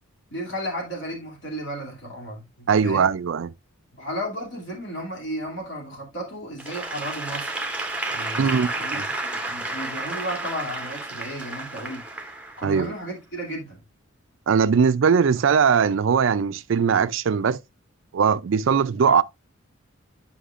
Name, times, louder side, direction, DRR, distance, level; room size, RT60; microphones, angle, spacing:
voice 1, 0.3-3.1 4.0-7.5 8.1-12.0 12.6-13.8, equal, 60° left, 2.7 m, -34 dB
voice 2, 2.7-3.5 8.4-9.1 12.6-12.9 14.5-17.6 18.1-19.2, right 6 dB, 65° right, 0.4 m, -20 dB
Applause / Crowd, 6.6-13.0, right 2 dB, 5° right, 0.7 m, -31 dB
10.0 x 5.6 x 2.5 m
head